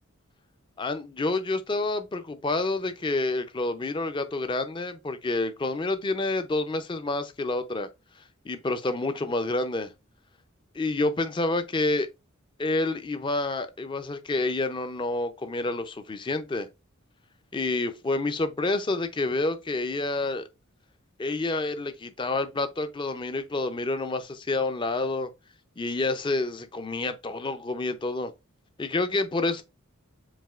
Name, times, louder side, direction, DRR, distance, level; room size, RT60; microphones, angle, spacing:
voice 1, 0.8-7.9 8.4-9.9 10.7-12.1 12.6-16.7 17.5-20.5 21.2-25.3 25.8-28.3 28.8-29.6, left 2 dB, 25° left, 0.4 m, -28 dB
7.2 x 2.7 x 2.4 m
head